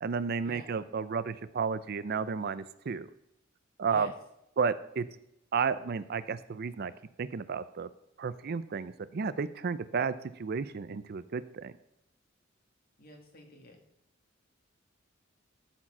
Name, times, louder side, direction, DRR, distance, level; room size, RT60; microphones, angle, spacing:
voice 1, 0.0-3.1 3.8-4.1 4.6-5.0 5.5-6.9 7.2-7.9 8.2-10.1 10.4-11.7, right 5 dB, 50° right, 15 dB, 0.4 m, -32 dB
voice 2, 13.0-13.8, left 1 dB, 50° left, 1 dB, 2.2 m, -49 dB
13.0 x 4.5 x 6.0 m, 0.81 s
head